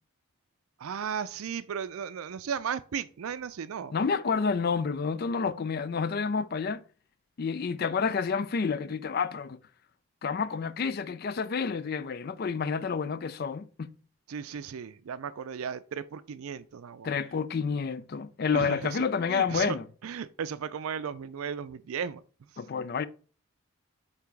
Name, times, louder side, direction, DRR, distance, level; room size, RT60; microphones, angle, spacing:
voice 1, 0.8-3.9 14.3-17.1 18.5-19.8 20.0-22.2, right 7 dB, 80° right, 0.4 m, -35 dB
voice 2, 3.9-6.8 7.4-9.6 10.2-13.9 17.0-19.8 22.6-23.1, left 5 dB, 45° left, 0.4 m, -29 dB
8.3 x 2.9 x 4.6 m
head